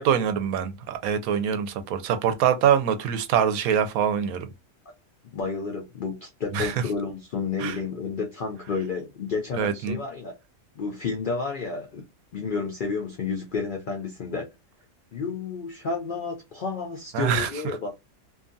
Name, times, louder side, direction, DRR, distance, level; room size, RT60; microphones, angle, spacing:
voice 1, 0.0-4.5 6.5-6.7 7.6-7.7 9.6-10.0 17.1-17.5, right 8 dB, 90° right, 1.0 m, -24 dB
voice 2, 5.3-10.4 10.8-12.0 12.3-14.5 15.1-17.9, left 4 dB, 75° left, 0.4 m, -31 dB
2.7 x 2.3 x 2.5 m
omnidirectional pair, 1.5 m